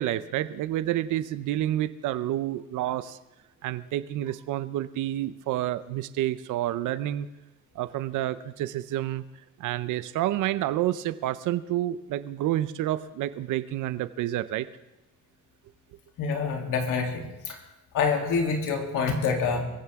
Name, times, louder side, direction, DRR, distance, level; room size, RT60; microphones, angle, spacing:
voice 1, 0.0-3.2 3.6-7.3 7.7-9.2 9.6-14.7, right 13 dB, 85° right, 14 dB, 0.7 m, -29 dB
voice 2, 16.2-17.6 17.9-19.6, left 5 dB, 90° left, 1 dB, 3.0 m, -26 dB
23.5 x 15.5 x 3.6 m, 0.96 s
cardioid pair, 90°, 30 cm